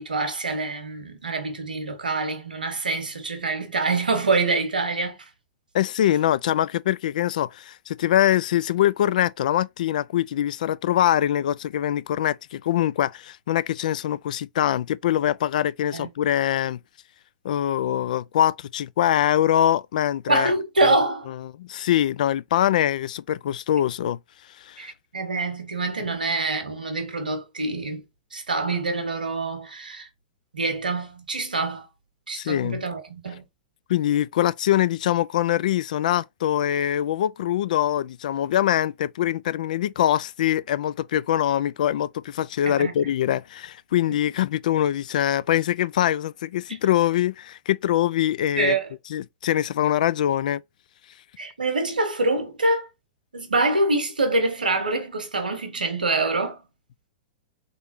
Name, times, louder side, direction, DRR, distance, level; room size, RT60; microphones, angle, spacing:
voice 1, 0.0-5.2 15.9-16.1 20.3-21.3 24.8-28.0 28.3-30.1 30.5-31.9 32.3-33.4 42.7-42.9 44.1-44.2 48.6-48.9 51.4-52.9 53.3-56.6, right 2 dB, 85° right, 1.2 m, -25 dB
voice 2, 5.7-16.8 17.4-20.5 20.8-21.0 21.6-24.2 24.6-24.9 32.3-32.8 33.9-48.8 49.1-50.6, left 11 dB, 65° left, 0.3 m, -23 dB
3.7 x 3.5 x 2.7 m
hypercardioid pair, 105°, 5 cm